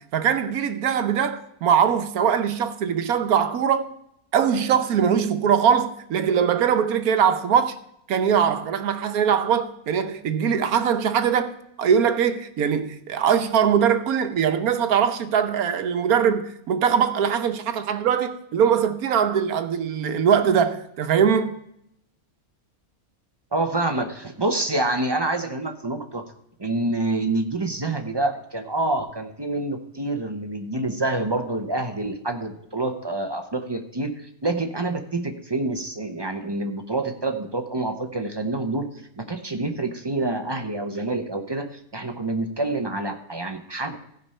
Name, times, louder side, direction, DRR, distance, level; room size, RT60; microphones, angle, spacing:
voice 1, 0.1-3.9 4.3-7.7 8.1-11.5 11.8-21.5, right 7 dB, 85° right, 1.3 m, -21 dB
voice 2, 23.5-26.2 26.6-38.9 39.2-44.0, right 2 dB, 25° right, 0.6 m, -27 dB
15.0 x 5.3 x 5.4 m
omnidirectional pair, 1.5 m